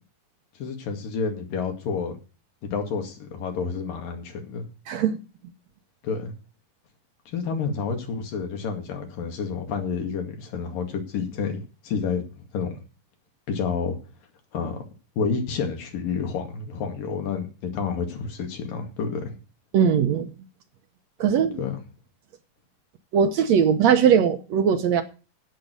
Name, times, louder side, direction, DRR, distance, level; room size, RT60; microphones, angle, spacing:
voice 1, 0.6-2.2 2.7-4.7 6.0-6.3 7.3-12.7 13.5-14.0 14.5-14.8 15.2-19.4 21.6-21.8, left 5 dB, 90° left, 4.0 m, -29 dB
voice 2, 4.9-5.2 19.7-20.3 21.2-21.6 23.1-25.0, right 7 dB, 70° right, 1.9 m, -20 dB
15.5 x 6.7 x 5.3 m
omnidirectional pair, 3.8 m